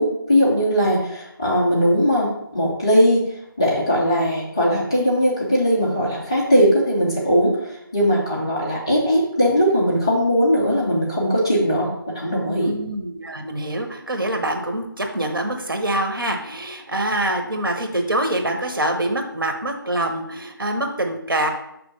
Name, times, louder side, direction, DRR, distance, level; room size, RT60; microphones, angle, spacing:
voice 1, 0.0-11.9 12.1-12.7, equal, 10° left, -6 dB, 0.6 m, -19 dB
voice 2, 12.5-21.5, right 1 dB, 65° right, 3 dB, 1.2 m, -25 dB
5.6 x 3.4 x 5.3 m, 0.77 s
figure-of-eight pair, 170°, 12 cm